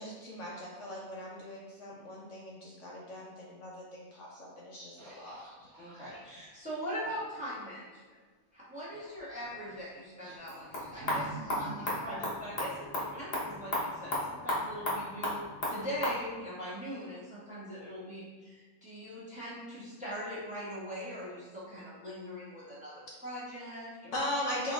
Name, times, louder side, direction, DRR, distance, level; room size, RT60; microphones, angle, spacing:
voice 1, 0.0-5.4 24.1-24.7, left 1 dB, 65° left, -4 dB, 0.9 m, -39 dB
sound 1, 5.0-7.4 8.9-9.8 10.2-12.2, right 3 dB, 75° right, 1.7 m, -49 dB
voice 2, 5.8-8.2 8.5-15.4 15.7-24.1, equal, 5° right, -9 dB, 1.0 m, -41 dB
sound 2, 10.4-16.2, left 1 dB, 45° left, 1.2 m, -35 dB
3.9 x 3.4 x 2.4 m, 1.4 s
omnidirectional pair, 1.5 m